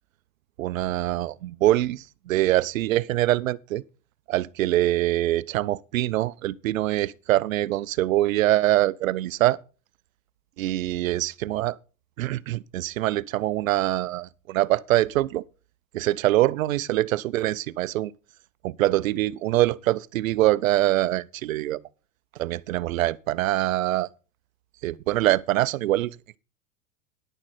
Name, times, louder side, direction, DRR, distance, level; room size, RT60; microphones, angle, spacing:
voice 1, 0.6-3.8 4.3-9.6 10.6-11.8 12.2-15.4 15.9-18.1 18.6-21.8 22.4-24.1 24.8-26.4, right 15 dB, 85° right, 0.6 m, -24 dB
10.0 x 9.9 x 4.2 m
hypercardioid pair, 100°, 39 cm